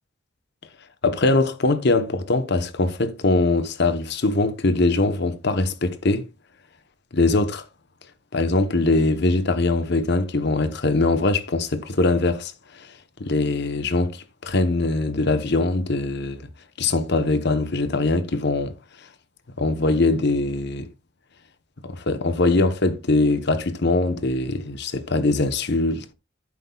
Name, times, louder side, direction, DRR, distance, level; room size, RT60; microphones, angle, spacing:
voice 1, 1.0-6.3 7.1-7.6 8.3-12.9 13.2-16.5 16.8-18.7 19.6-20.9 21.8-26.1, left 2 dB, 60° left, 1.0 m, -22 dB
11.0 x 8.4 x 2.3 m
head